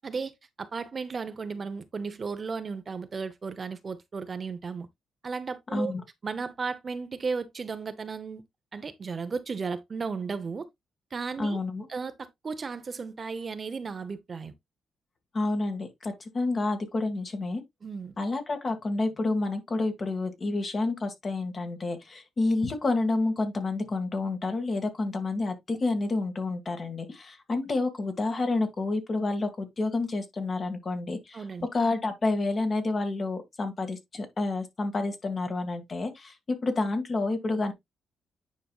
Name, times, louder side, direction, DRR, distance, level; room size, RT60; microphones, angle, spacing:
voice 1, 0.6-4.9 5.2-5.9 6.2-8.4 8.7-10.7 11.1-11.6 11.9-14.5 17.8-18.1 31.3-31.7, right 5 dB, 35° right, 0.8 m, -34 dB
voice 2, 11.4-11.9 15.3-17.6 18.2-31.4 31.7-37.7, left 2 dB, 35° left, 1.9 m, -29 dB
9.5 x 5.3 x 2.4 m
cardioid pair, 105°, 0 cm